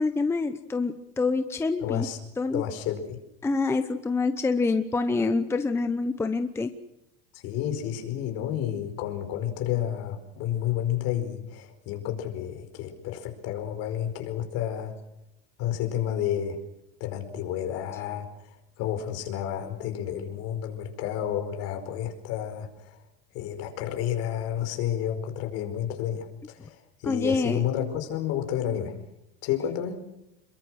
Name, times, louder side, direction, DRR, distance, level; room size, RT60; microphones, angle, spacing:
voice 1, 0.0-2.1 2.4-2.6 3.4-6.7 27.0-27.6, left 3 dB, 10° left, 8 dB, 0.8 m, -26 dB
voice 2, 1.8-2.2 2.5-3.2 7.3-15.0 15.6-16.6 17.0-18.3 18.8-22.9 23.3-26.7 27.0-29.0 29.4-30.0, left 10 dB, 50° left, 5 dB, 5.0 m, -30 dB
28.5 x 22.5 x 6.4 m, 0.86 s
cardioid pair, 160°, 31 cm